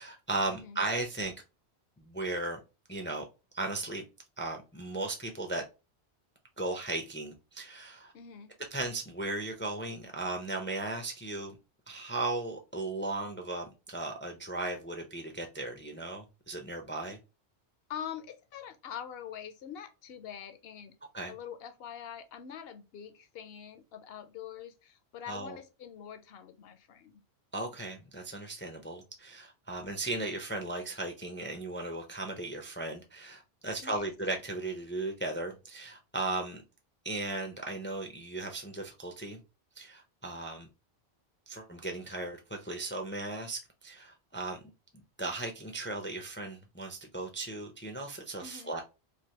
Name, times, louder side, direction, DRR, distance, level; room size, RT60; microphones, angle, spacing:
voice 1, 0.0-1.3 2.0-2.6 2.9-3.2 3.5-4.0 4.4-5.6 6.6-8.1 8.7-11.6 11.9-17.2 21.1-21.3 25.3-25.6 27.5-36.6 37.0-39.4 39.8-40.7 41.5-44.6 44.9-48.8, right 2 dB, 20° left, 0.3 m, -36 dB
voice 2, 0.5-0.8 8.1-8.5 17.9-20.9 21.3-27.2 33.8-34.1 48.4-48.7, left 8 dB, 70° left, 0.8 m, -44 dB
3.3 x 2.5 x 2.7 m
omnidirectional pair, 1.1 m